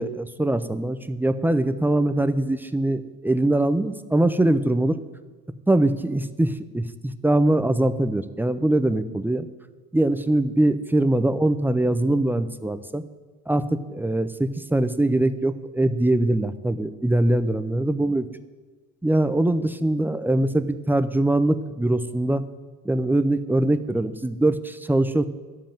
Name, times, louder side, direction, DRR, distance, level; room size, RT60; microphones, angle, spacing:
voice 1, 0.0-5.0 5.7-9.5 9.9-13.0 13.5-18.3 19.0-22.5 22.8-25.3, right 1 dB, 5° right, 11 dB, 0.6 m, -22 dB
11.5 x 7.8 x 8.9 m, 1.4 s
cardioid pair, 120°, 34 cm